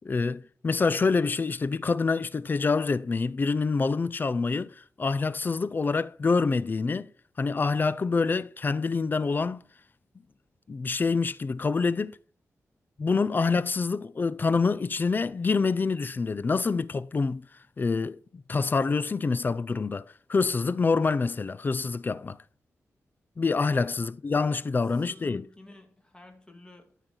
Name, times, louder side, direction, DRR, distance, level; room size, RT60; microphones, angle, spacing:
voice 1, 0.0-7.1 7.4-9.6 10.7-12.2 13.0-17.4 17.8-22.4 23.4-25.4, left 4 dB, 35° left, 0.4 m, -26 dB
voice 2, 24.6-27.0, left 2 dB, 15° left, 1.9 m, -52 dB
12.0 x 4.7 x 3.9 m
wide cardioid pair, 115°, 6 cm